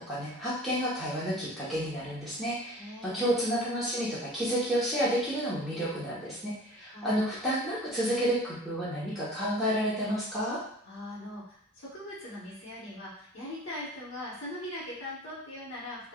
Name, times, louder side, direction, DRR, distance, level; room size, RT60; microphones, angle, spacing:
voice 1, 0.1-10.6, equal, ahead, -11 dB, 1.0 m, -30 dB
voice 2, 2.8-3.4 6.9-7.3 10.8-16.1, left 1 dB, 60° left, -8 dB, 1.1 m, -41 dB
3.2 x 2.5 x 2.4 m, 0.68 s
head